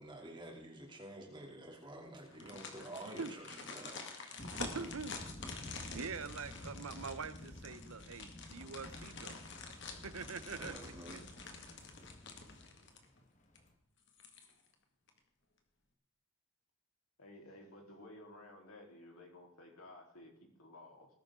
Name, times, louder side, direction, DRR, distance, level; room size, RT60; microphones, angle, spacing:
voice 1, 0.0-4.6 10.6-11.2, right 1 dB, 20° right, 0 dB, 2.9 m, -50 dB
sound 1, 2.3-13.2 13.6-13.7 14.1-14.7 15.1-15.2, left 4 dB, 50° left, 2.0 m, -49 dB
sound 2, 4.4-13.7, left 1 dB, 35° left, 1.4 m, -52 dB
voice 2, 4.4-5.2 5.6-9.4 10.0-11.2, right 5 dB, 75° right, 13 dB, 0.8 m, -45 dB
voice 3, 17.2-21.1, left 1 dB, 75° left, 0 dB, 3.7 m, -55 dB
19.5 x 11.5 x 3.8 m, 0.77 s
head